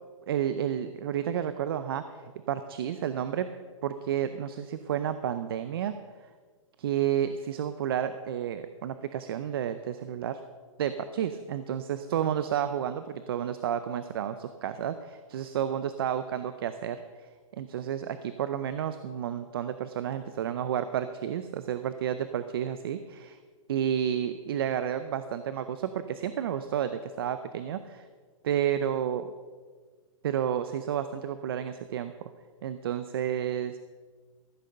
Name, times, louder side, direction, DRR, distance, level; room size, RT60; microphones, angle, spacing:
voice 1, 0.3-3.5 3.8-5.9 6.8-10.4 10.8-23.4 23.7-28.1 28.4-29.3 30.2-32.1 32.6-33.8, right 9 dB, 45° right, 11 dB, 0.6 m, -31 dB
14.5 x 7.6 x 6.6 m, 1.5 s
hypercardioid pair, 165°, 17 cm